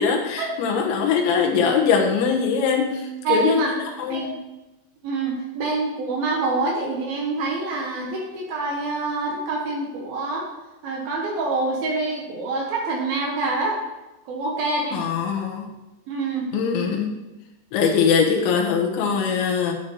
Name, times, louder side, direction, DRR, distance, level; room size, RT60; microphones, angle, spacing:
voice 1, 0.0-3.6 4.0-4.3 14.9-15.7 16.5-17.2 17.7-19.7, left 6 dB, 80° left, 1 dB, 3.5 m, -22 dB
voice 2, 3.2-3.7 4.1-4.3 5.0-10.5 10.8-13.8 14.3-15.0 16.1-16.5, right 3 dB, 65° right, -1 dB, 2.6 m, -26 dB
10.0 x 9.4 x 3.2 m, 1.0 s
omnidirectional pair, 5.3 m